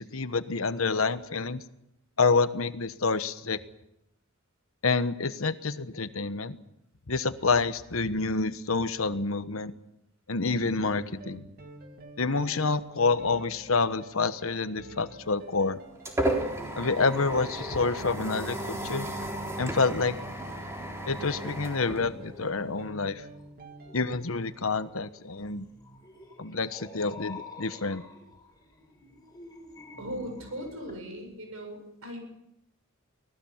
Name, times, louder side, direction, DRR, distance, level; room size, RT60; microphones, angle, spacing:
voice 1, 0.0-1.6 2.2-3.6 4.8-6.6 7.1-9.7 10.3-11.4 12.2-15.8 16.8-19.1 19.6-20.2 21.1-23.2 23.9-25.7 26.4-28.0, left 4 dB, 70° left, 12 dB, 1.2 m, -28 dB
sound 1, 10.5-24.1, right 1 dB, 45° right, 2.5 m, -48 dB
sound 2, 15.3-22.7, right 1 dB, 15° right, 3.8 m, -34 dB
sound 3, 16.4-31.0, left 2 dB, 20° left, 5.1 m, -50 dB
voice 2, 30.0-32.2, equal, 80° right, 4 dB, 7.7 m, -38 dB
25.0 x 18.0 x 7.3 m, 0.82 s
head